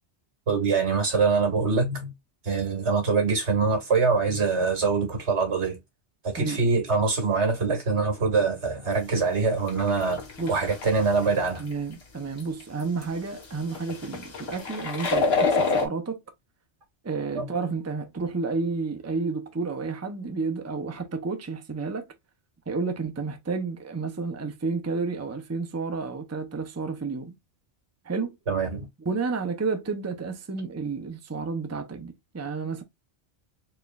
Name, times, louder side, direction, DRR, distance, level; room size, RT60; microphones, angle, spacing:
voice 1, 0.5-2.1 2.4-5.8 6.2-11.6 17.4-17.5 28.5-28.9, right 4 dB, 85° right, 2.1 m, -24 dB
sound 1, 9.1-9.2 9.7-11.7 12.4-12.6 13.0-13.1 13.4-13.5 13.7-15.9, left 4 dB, 65° left, 1.4 m, -27 dB
voice 2, 11.6-16.2 17.0-22.1 22.7-27.3 28.1-28.3 29.0-32.8, right 4 dB, 20° right, 0.6 m, -31 dB
4.3 x 3.2 x 2.4 m
omnidirectional pair, 1.1 m